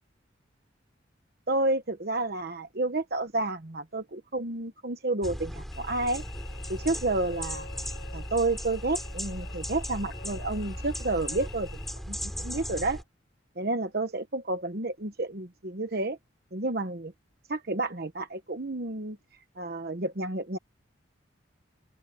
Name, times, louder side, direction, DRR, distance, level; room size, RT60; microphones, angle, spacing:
voice 1, 1.5-6.2 6.7-7.7 8.1-11.7 12.1-13.0 13.6-16.2 16.5-17.1 17.5-19.2 19.6-20.6, right 2 dB, 50° right, 1.1 m, -30 dB
sound 1, 5.2-13.0, equal, ahead, 7.3 m, -37 dB
Cricket / Buzz, 5.7-11.9, left 5 dB, 65° left, 7.2 m, -47 dB
open air
head